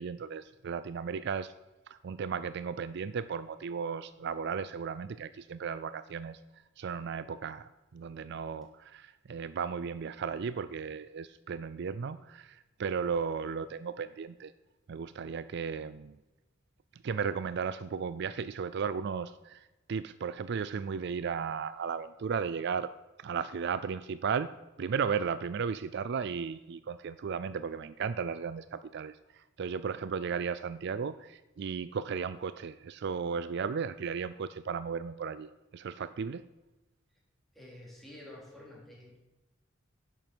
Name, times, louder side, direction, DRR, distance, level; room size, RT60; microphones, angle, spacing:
voice 1, 0.0-1.5 1.9-6.4 6.8-14.5 14.9-16.2 17.0-22.9 23.2-24.5 24.8-36.5, right 6 dB, 60° right, 14 dB, 0.4 m, -35 dB
voice 2, 37.5-39.2, left 1 dB, ahead, -4 dB, 3.4 m, -49 dB
10.5 x 7.3 x 6.1 m, 1.0 s
head